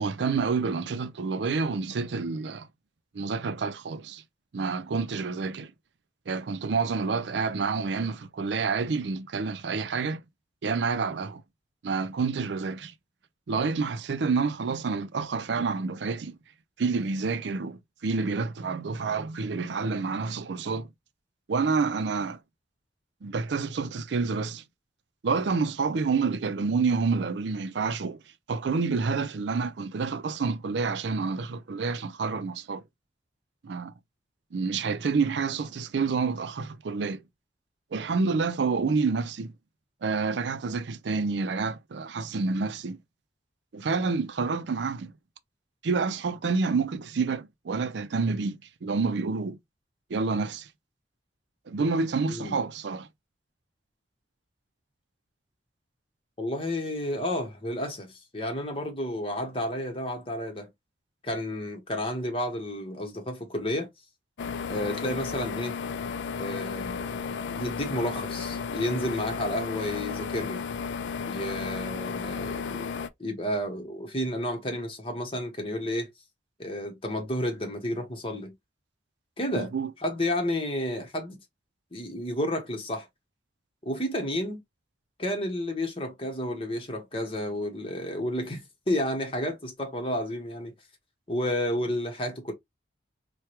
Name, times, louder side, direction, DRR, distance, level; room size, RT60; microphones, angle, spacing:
voice 1, 0.0-2.7 3.1-4.2 4.5-5.7 6.3-10.2 10.6-11.4 11.8-12.9 13.5-16.4 16.8-20.9 21.5-22.4 23.2-24.6 25.2-28.2 28.5-32.8 33.6-33.9 34.5-37.2 37.9-39.5 40.0-43.0 43.7-45.1 45.8-49.6 50.1-50.7 51.7-53.1 79.5-79.9, right 4 dB, 80° right, 0.4 m, -28 dB
voice 2, 56.4-60.7 61.2-63.9 64.7-65.7 66.4-67.2 67.5-70.6 71.3-72.9 73.2-76.1 76.6-78.5 79.4-79.7 80.0-81.4 81.9-83.1 83.8-84.6 85.2-90.7 91.3-92.5, left 1 dB, 30° left, 1.0 m, -31 dB
sound 1, 64.4-73.1, left 5 dB, 85° left, 0.4 m, -34 dB
4.6 x 2.2 x 2.8 m
head